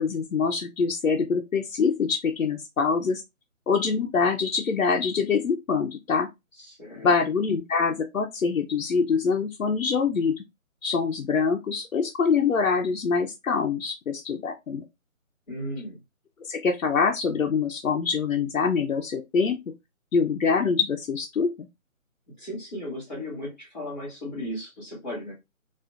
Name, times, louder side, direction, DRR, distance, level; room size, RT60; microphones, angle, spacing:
voice 1, 0.0-3.2 3.7-6.3 7.0-10.4 10.8-14.8 16.4-19.6 20.1-21.7, left 5 dB, 80° left, 0.8 m, -24 dB
voice 2, 6.6-7.1 15.5-16.0 22.4-25.3, left 1 dB, ahead, 0.9 m, -35 dB
5.0 x 2.7 x 2.4 m
hypercardioid pair, 170°, 41 cm